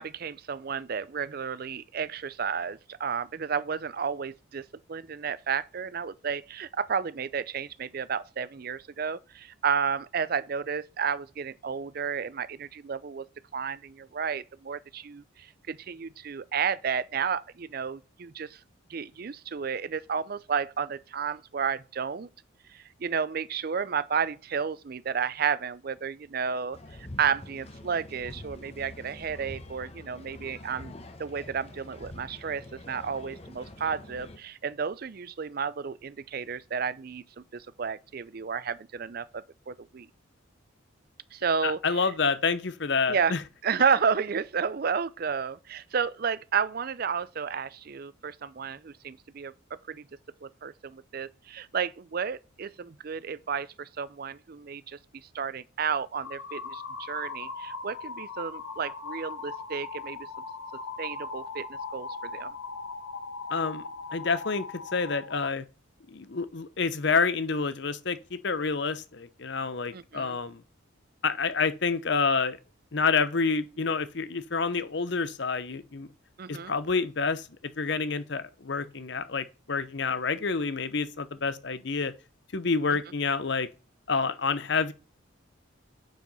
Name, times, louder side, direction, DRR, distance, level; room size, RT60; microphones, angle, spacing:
voice 1, 0.0-13.2 13.5-18.6 18.9-22.3 22.7-30.9 31.2-40.1 41.3-42.1 43.1-43.3 43.6-49.5 49.9-50.0 50.4-55.0 55.3-60.3 61.0-62.5 69.9-70.4 76.4-76.7, right 6 dB, 45° right, 0.4 m, -32 dB
sound 1, 26.7-34.4, left 1 dB, 30° left, 1.0 m, -45 dB
voice 2, 41.6-43.4 63.5-63.8 64.1-64.6 64.9-65.6 66.1-70.6 71.2-72.6 72.9-76.1 76.5-77.5 77.8-82.1 82.5-83.7 84.1-84.9, left 4 dB, 55° left, 0.8 m, -28 dB
sound 2, 56.2-65.5, left 4 dB, 80° left, 1.1 m, -39 dB
9.1 x 5.1 x 5.4 m
head